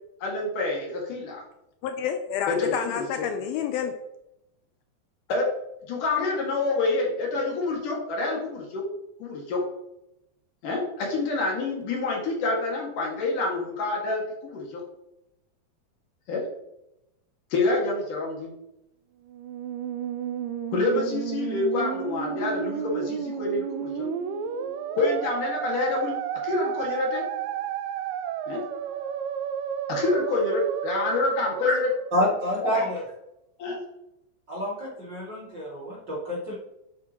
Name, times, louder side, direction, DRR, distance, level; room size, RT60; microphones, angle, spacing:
voice 1, 0.2-1.4 2.5-3.5 5.3-5.5 5.9-8.8 9.2-9.6 10.6-14.8 16.3-16.4 17.5-18.5 20.7-24.1 24.9-27.3 28.5-28.6 29.9-31.9 32.6-32.9 33.6-33.8, left 3 dB, 60° left, -1 dB, 3.3 m, -27 dB
voice 2, 1.8-3.9, left 8 dB, 80° left, 7 dB, 2.4 m, -29 dB
Musical instrument, 19.3-32.6, right 9 dB, 90° right, 1.9 m, -32 dB
voice 3, 32.1-33.0 34.5-36.6, equal, 35° right, -6 dB, 2.3 m, -28 dB
10.0 x 7.8 x 3.0 m, 0.85 s
omnidirectional pair, 4.5 m